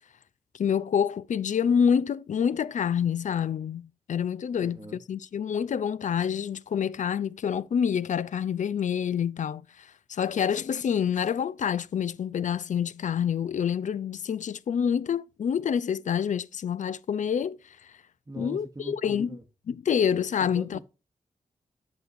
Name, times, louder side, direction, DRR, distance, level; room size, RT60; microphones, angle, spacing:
voice 1, 0.6-4.8 5.1-17.9 18.4-19.4 19.7-20.8, left 8 dB, 60° left, 0.4 m, -27 dB
voice 2, 4.6-5.0 18.3-19.4 20.4-20.8, right 2 dB, 25° right, 0.9 m, -42 dB
8.2 x 6.2 x 2.6 m
cardioid pair, 45°, 14 cm